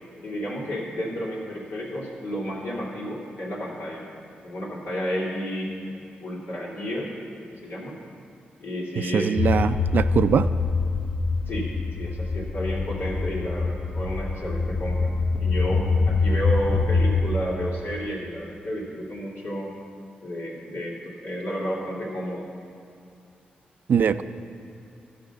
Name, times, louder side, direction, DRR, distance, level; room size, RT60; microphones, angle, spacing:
voice 1, 0.2-4.1 4.4-7.1 7.4-8.0 8.6-9.7 11.5-11.7 12.0-15.1 15.4-19.8 20.2-22.5, equal, 85° left, -5 dB, 2.4 m, -31 dB
voice 2, 9.0-10.5 23.9-24.2, right 7 dB, 65° right, 13 dB, 0.4 m, -22 dB
sound 1, 9.4-17.3, left 4 dB, 40° left, 0.6 m, -24 dB
13.0 x 5.1 x 6.8 m, 2.5 s
cardioid pair, 80°, 3 cm